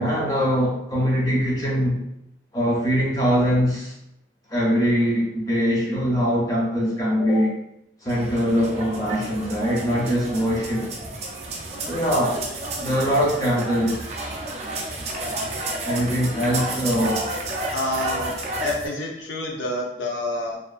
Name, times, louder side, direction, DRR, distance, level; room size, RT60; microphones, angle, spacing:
voice 1, 0.0-2.0 2.5-3.9 4.5-7.5 8.0-10.9 11.8-12.4 12.8-14.0 15.8-17.2, equal, 20° left, -4 dB, 0.5 m, -22 dB
sound 1, 8.1-18.9, right 2 dB, 35° right, 0.3 m, -31 dB
voice 2, 17.7-18.3 18.6-20.6, left 1 dB, 75° left, -1 dB, 0.6 m, -28 dB
2.4 x 2.4 x 2.3 m, 0.79 s
head